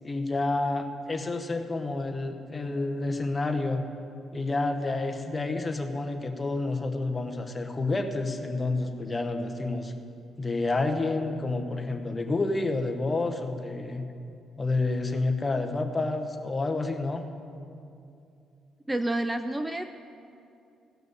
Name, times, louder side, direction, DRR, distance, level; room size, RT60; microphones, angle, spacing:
voice 1, 0.0-3.8 4.3-9.9 10.4-14.1 14.6-17.2, left 2 dB, 25° left, 5 dB, 1.1 m, -29 dB
voice 2, 18.9-19.8, right 1 dB, 15° right, 9 dB, 0.4 m, -29 dB
16.0 x 6.1 x 6.9 m, 2.6 s
cardioid pair, 90°, 0 cm